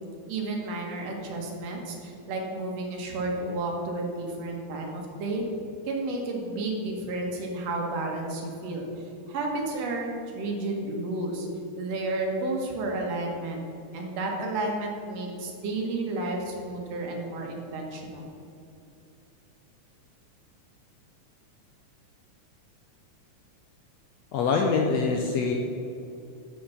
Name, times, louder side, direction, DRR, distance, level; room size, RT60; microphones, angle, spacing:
voice 1, 0.3-5.4 5.9-8.9 9.3-11.5 11.8-13.6 13.9-18.3, right 2 dB, 60° right, 0 dB, 2.3 m, -31 dB
voice 2, 24.3-25.5, left 4 dB, 75° left, 2 dB, 1.6 m, -24 dB
7.3 x 6.1 x 7.0 m, 2.7 s
omnidirectional pair, 3.5 m